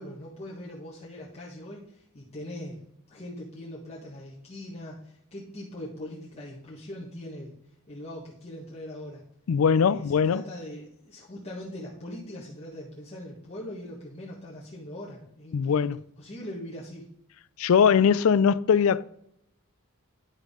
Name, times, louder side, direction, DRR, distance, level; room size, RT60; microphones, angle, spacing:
voice 1, 0.0-7.5 7.9-9.2 9.8-15.9 16.2-17.0, left 1 dB, 30° left, 1.6 m, -41 dB
voice 2, 9.5-10.4 15.5-16.0 17.6-19.0, left 7 dB, 75° left, 0.4 m, -21 dB
10.5 x 6.2 x 3.7 m
head